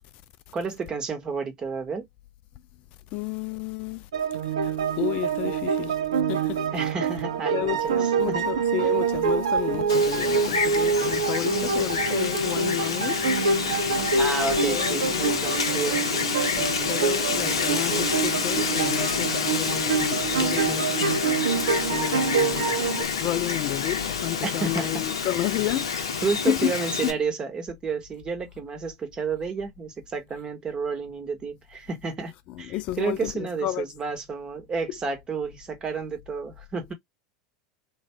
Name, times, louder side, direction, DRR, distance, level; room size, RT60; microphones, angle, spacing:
voice 1, 0.5-2.1 6.7-8.5 8.8-8.9 14.2-16.0 24.4-25.0 26.2-32.3 32.6-36.9, right 5 dB, 30° right, 1.2 m, -31 dB
voice 2, 3.1-4.0 4.6-4.7 5.0-6.0 6.3-6.6 7.5-13.2 14.7-15.4 16.6-21.2 21.5-21.6 21.9-22.8 23.2-26.7 27.0-27.1 32.5-33.9, left 14 dB, 50° left, 0.4 m, -31 dB
sound 1, 4.1-23.0, right 5 dB, 80° right, 0.6 m, -26 dB
Wind, 9.9-27.1, left 6 dB, 80° left, 0.7 m, -28 dB
3.1 x 2.6 x 3.4 m
hypercardioid pair, 85°, 3 cm